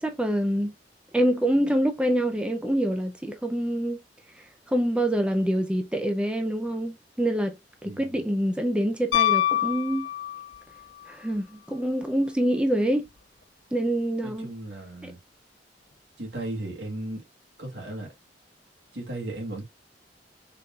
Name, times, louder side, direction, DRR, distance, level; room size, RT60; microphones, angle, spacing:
voice 1, 0.0-0.7 1.1-4.0 4.3-7.6 7.8-10.1 11.1-13.1 13.7-14.5 15.0-15.1, right 1 dB, 5° right, 0.3 m, -26 dB
voice 2, 7.8-8.2 14.2-15.2 16.2-17.2 17.6-18.1 18.9-19.6, right 1 dB, 70° right, 1.9 m, -36 dB
Piano, 9.1-10.7 13.1-13.2, left 12 dB, 85° left, 0.6 m, -24 dB
4.0 x 3.6 x 2.3 m
head